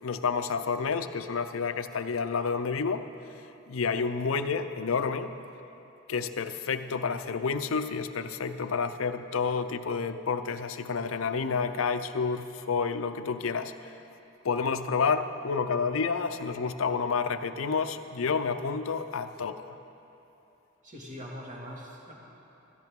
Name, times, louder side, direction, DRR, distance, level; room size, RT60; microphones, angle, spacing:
voice 1, 0.0-3.0 3.7-5.3 6.1-13.7 14.4-19.8, left 5 dB, 70° left, 10 dB, 0.6 m, -29 dB
voice 2, 20.8-22.1, equal, 40° right, -3 dB, 2.1 m, -42 dB
16.5 x 13.5 x 3.7 m, 2.9 s
head